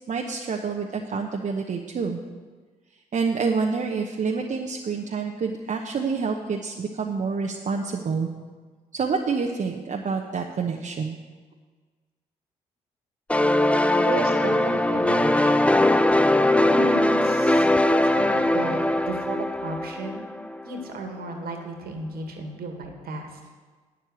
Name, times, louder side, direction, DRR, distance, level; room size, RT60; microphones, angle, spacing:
voice 1, 0.1-2.2 3.1-8.3 8.9-11.2, right 5 dB, 50° right, 1 dB, 1.0 m, -27 dB
sound 1, 13.3-20.8, left 1 dB, 5° left, 0.5 m, -21 dB
voice 2, 14.0-15.7 16.7-20.3 20.7-23.3, right 3 dB, 65° right, 4 dB, 1.9 m, -34 dB
9.1 x 7.7 x 8.0 m, 1.4 s
hypercardioid pair, 45°, 17 cm